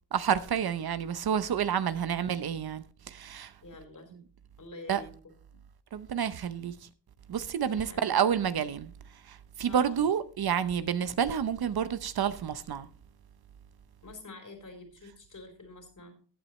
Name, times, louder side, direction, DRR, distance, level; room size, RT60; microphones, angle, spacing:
voice 1, 0.1-3.5 4.9-5.0 5.9-6.7 7.3-8.9 9.3-12.9, right 8 dB, 65° right, 0.8 m, -29 dB
voice 2, 3.6-4.1 4.6-5.1 5.5-5.6 7.7-8.2 9.7-10.0 14.0-16.1, left 2 dB, 50° left, 3.7 m, -47 dB
15.0 x 8.9 x 3.1 m
cardioid pair, 85°, 40 cm